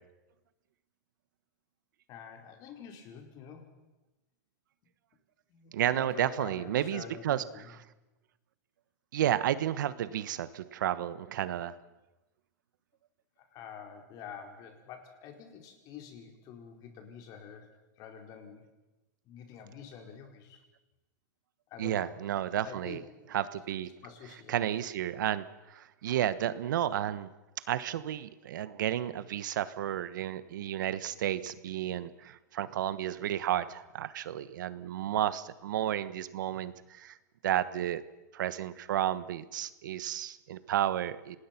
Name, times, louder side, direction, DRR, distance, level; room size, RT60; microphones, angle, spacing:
voice 1, 2.1-3.7 5.5-7.7 13.4-17.7 18.0-18.7 19.2-20.6 21.7-22.1 22.6-23.0 24.0-24.7, left 7 dB, 40° left, 4 dB, 4.7 m, -47 dB
voice 2, 5.7-7.8 9.1-11.7 21.8-23.0 23.3-23.9 24.5-27.3 27.7-37.2 37.4-38.0 38.3-41.4, right 11 dB, 75° right, 14 dB, 1.3 m, -32 dB
27.5 x 20.0 x 6.1 m, 1.1 s
hypercardioid pair, 135°, 10 cm